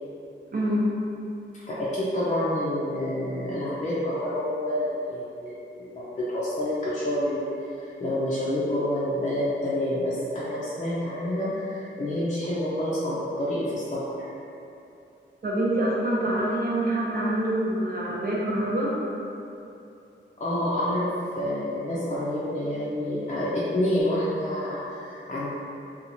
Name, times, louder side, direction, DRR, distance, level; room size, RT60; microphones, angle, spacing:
voice 1, 0.5-0.9 15.4-18.9, right 1 dB, 50° right, -5 dB, 0.6 m, -25 dB
voice 2, 1.7-7.4 7.8-14.3 20.4-25.5, left 1 dB, 35° left, -9 dB, 0.5 m, -28 dB
2.8 x 2.3 x 2.6 m, 2.7 s
wide cardioid pair, 95°, 20 cm